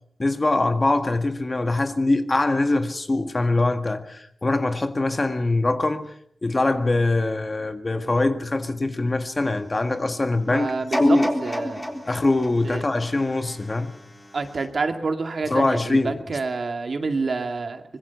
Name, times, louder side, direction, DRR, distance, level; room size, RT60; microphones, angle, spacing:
voice 1, 0.2-6.1 6.4-10.7 11.0-11.3 12.1-13.9 15.5-16.2, left 2 dB, 30° left, 1.8 m, -23 dB
voice 2, 10.5-11.9 12.6-12.8 14.3-17.8, right 4 dB, 55° right, 2.2 m, -28 dB
sound 1, 10.9-14.0 14.5-14.6, equal, 10° left, 3.8 m, -29 dB
24.5 x 21.5 x 5.9 m
wide cardioid pair, 105°, 0 cm